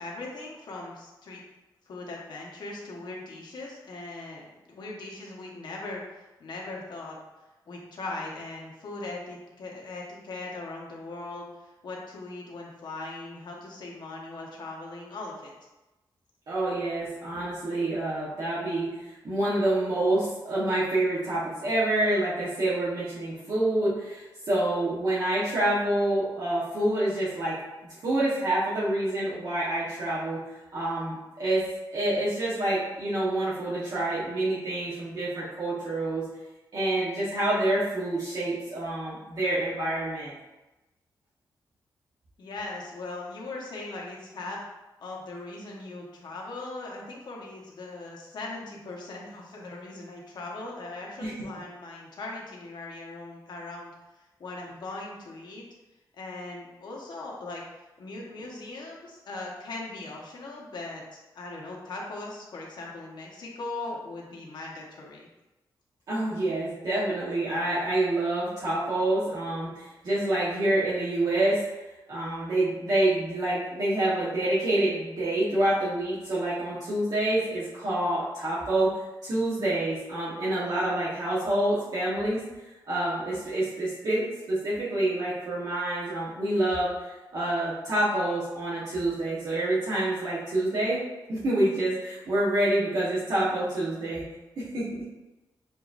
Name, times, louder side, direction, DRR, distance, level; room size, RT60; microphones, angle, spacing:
voice 1, 0.0-1.4 1.9-7.2 7.7-15.5 42.4-44.6 45.0-53.9 54.4-55.6 56.2-57.6 58.0-61.0 61.3-65.3, left 2 dB, 65° left, -2 dB, 1.0 m, -39 dB
voice 2, 16.5-27.6 28.0-31.6 31.9-36.3 36.7-40.3 51.2-51.3 66.1-71.6 72.1-82.4 82.9-91.0 91.3-94.2 94.6-94.9, right 1 dB, 55° right, -9 dB, 1.1 m, -27 dB
6.7 x 3.0 x 2.5 m, 1.1 s
wide cardioid pair, 140°, 8 cm